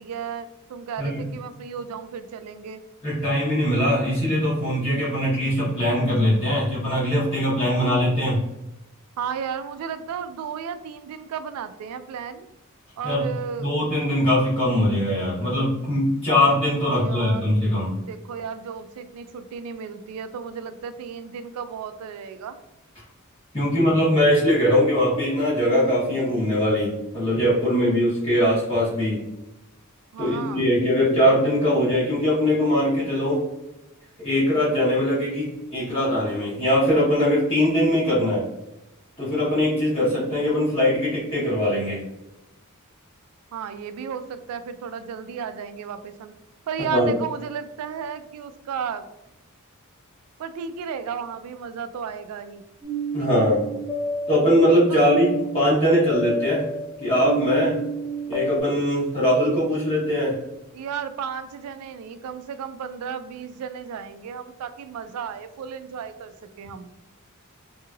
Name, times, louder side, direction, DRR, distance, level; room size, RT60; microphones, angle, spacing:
voice 1, 0.0-2.8 9.2-12.5 13.0-13.7 16.8-17.6 18.0-22.6 30.1-30.6 43.5-46.3 46.7-49.0 50.4-52.6 53.2-53.5 54.9-55.0 60.7-66.9, right 7 dB, 80° right, 11 dB, 0.3 m, -34 dB
voice 2, 3.0-8.4 13.0-13.3 13.6-18.0 23.5-29.2 30.2-33.4 34.2-38.4 39.2-42.0 46.9-47.1 53.1-53.6 54.3-56.6 57.0-57.8 58.3-60.4, equal, 25° left, -9 dB, 1.0 m, -21 dB
sound 1, 52.8-58.6, right 2 dB, 5° right, 0.5 m, -30 dB
3.0 x 2.7 x 2.3 m, 0.94 s
head